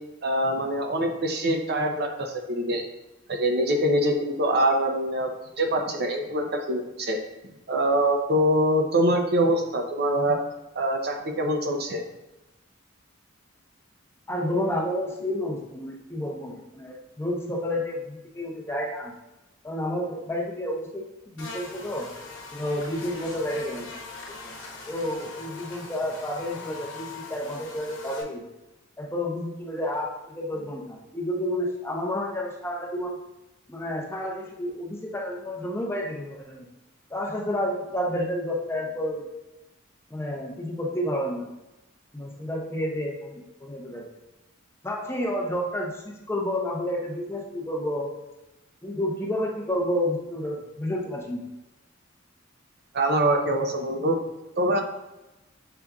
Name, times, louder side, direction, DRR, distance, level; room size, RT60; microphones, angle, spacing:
voice 1, 0.2-2.9 3.3-5.3 5.6-7.2 7.7-10.4 10.7-12.0 52.9-54.2 54.6-54.8, right 1 dB, 50° right, 4 dB, 0.5 m, -24 dB
voice 2, 14.3-19.1 19.6-22.1 22.5-23.9 24.3-24.6 24.9-28.4 29.0-33.2 33.7-36.7 37.1-39.3 40.1-41.5 42.1-44.1 44.8-48.1 48.8-51.5, left 1 dB, 10° left, -2 dB, 0.6 m, -30 dB
Buzz, 21.4-28.2, left 3 dB, 70° left, 0.9 m, -41 dB
6.7 x 2.4 x 2.3 m, 0.99 s
head